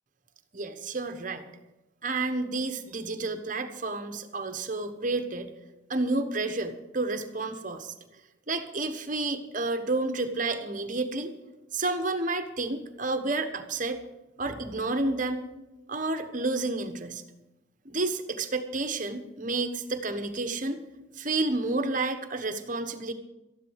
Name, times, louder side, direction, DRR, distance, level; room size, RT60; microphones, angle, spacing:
voice 1, 0.5-1.4 2.0-5.5 5.9-7.9 8.5-11.3 11.7-14.0 14.4-15.4 15.9-17.2 17.8-20.8 21.2-23.1, right 2 dB, 40° right, 8 dB, 1.2 m, -30 dB
13.5 x 11.0 x 6.5 m, 1.0 s
head